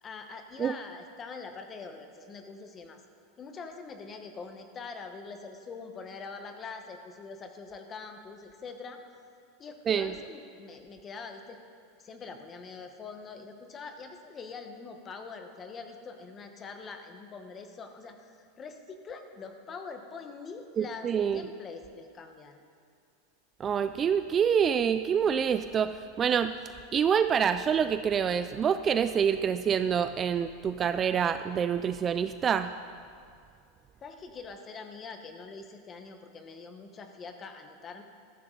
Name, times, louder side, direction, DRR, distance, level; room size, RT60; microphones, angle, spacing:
voice 1, 0.0-3.0 3.4-9.0 9.6-11.6 12.0-22.6 34.0-38.0, left 4 dB, 25° left, 6 dB, 1.1 m, -44 dB
voice 2, 20.8-21.4 23.6-26.5 26.9-32.7, right 7 dB, 25° right, 10 dB, 0.3 m, -26 dB
14.5 x 14.0 x 3.9 m, 2.3 s
supercardioid pair, 150°, 0 cm